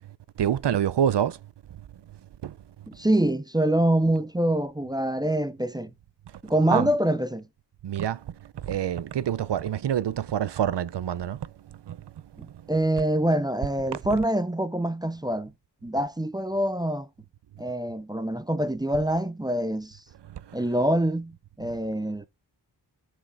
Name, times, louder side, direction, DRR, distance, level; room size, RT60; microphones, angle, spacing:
voice 1, 0.4-1.4 2.4-2.5 6.7-6.9 7.8-8.2 8.6-11.4 11.9-12.0, right 9 dB, 70° right, 0.6 m, -26 dB
voice 2, 2.9-5.9 6.4-7.4 12.4-15.5 15.8-17.1 17.6-20.0 20.5-22.3, right 1 dB, 10° right, 0.4 m, -25 dB
13.5 x 4.8 x 2.5 m
wide cardioid pair, 65°, 44 cm